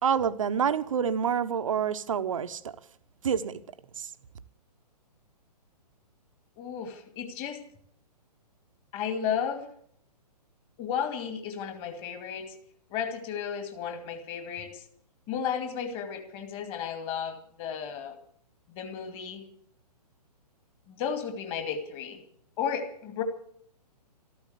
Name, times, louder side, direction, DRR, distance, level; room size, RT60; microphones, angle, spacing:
voice 1, 0.0-2.8 3.2-3.6 4.0-4.1, right 7 dB, 50° right, 1.0 m, -27 dB
voice 2, 6.6-7.6 8.9-9.7 10.8-12.6 12.9-14.9 15.3-18.2 18.7-19.5 20.9-22.2 22.6-23.2, left 7 dB, 25° left, 2.3 m, -33 dB
14.0 x 12.5 x 8.2 m
figure-of-eight pair, 125°, 21 cm